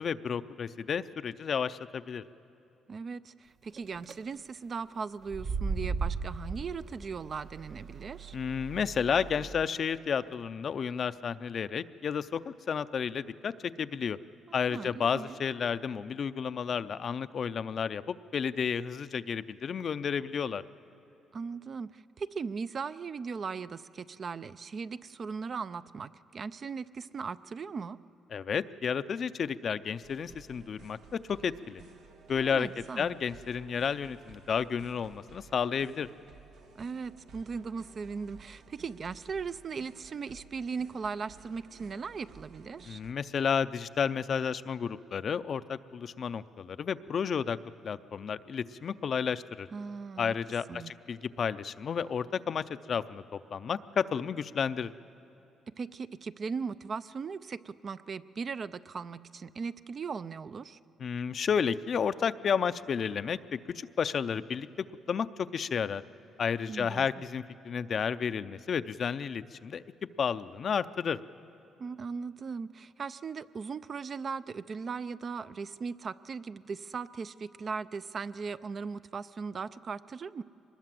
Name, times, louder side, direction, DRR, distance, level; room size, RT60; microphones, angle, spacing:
voice 1, 0.0-2.2 8.3-13.5 13.8-14.2 14.5-20.6 28.3-31.8 32.3-32.7 33.0-36.1 42.9-47.6 47.8-49.7 50.2-54.9 61.0-65.3 65.5-66.0 66.4-71.2, left 7 dB, 50° left, 13 dB, 0.5 m, -32 dB
voice 2, 2.9-8.4 14.7-15.4 21.3-28.0 32.4-33.1 36.8-43.0 49.7-50.4 50.7-50.9 55.8-60.8 66.7-67.1 71.8-80.4, right 5 dB, 40° right, 14 dB, 0.5 m, -38 dB
sound 1, 3.8-4.1 5.2-9.6, right 4 dB, 65° right, 1.3 m, -37 dB
sound 2, 30.0-43.1, right 4 dB, 85° right, 1.5 m, -55 dB
23.5 x 20.5 x 7.6 m, 2.9 s
cardioid pair, 110°, 0 cm